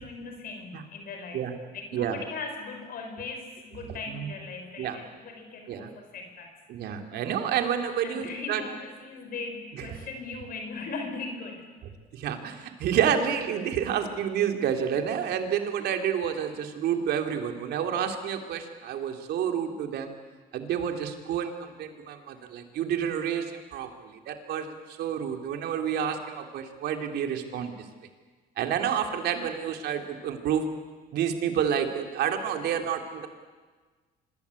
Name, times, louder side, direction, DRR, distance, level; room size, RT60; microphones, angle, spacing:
voice 1, 0.0-6.5 6.8-7.1 8.0-11.8, left 4 dB, 60° left, 4 dB, 5.2 m, -39 dB
voice 2, 6.7-8.6 9.8-9.9 12.1-20.1 20.5-27.7 28.6-30.6 31.1-33.3, right 8 dB, 70° right, 5 dB, 3.2 m, -29 dB
26.0 x 21.5 x 8.5 m, 1.4 s
cardioid pair, 110°, 17 cm